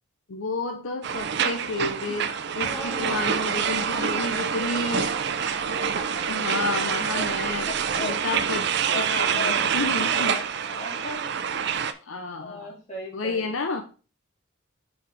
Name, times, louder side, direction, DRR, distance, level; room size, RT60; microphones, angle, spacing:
voice 1, 0.3-5.2 6.3-10.4 12.0-12.7 13.1-13.8, left 3 dB, 70° left, 6 dB, 0.7 m, -31 dB
sound 1, 1.0-11.9, right 7 dB, 55° right, 0.5 m, -26 dB
voice 2, 2.6-3.5 3.8-4.5 5.8-6.3 6.6-7.3 7.7-8.1 8.7-9.7 10.0-11.2 12.4-13.5, left 1 dB, 30° left, -3 dB, 2.6 m, -38 dB
5.3 x 4.8 x 4.9 m, 0.36 s
head